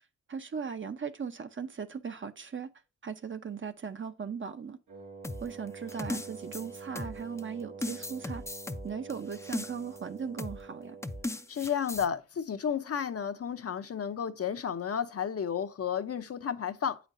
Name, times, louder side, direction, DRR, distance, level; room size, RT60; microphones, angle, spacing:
voice 1, 0.3-2.7 3.0-4.8 5.4-8.4 8.8-11.0, right 6 dB, 40° right, 0.6 m, -38 dB
Wind instrument woodwind instrument, 4.9-11.5, right 5 dB, 75° right, 1.6 m, -46 dB
sound 1, 5.2-7.4 7.8-10.0 10.4-10.6 11.0-12.1, left 2 dB, 10° left, 0.4 m, -37 dB
voice 2, 11.5-17.0, left 8 dB, 50° left, 0.6 m, -32 dB
8.1 x 5.1 x 2.5 m
cardioid pair, 75°, 30 cm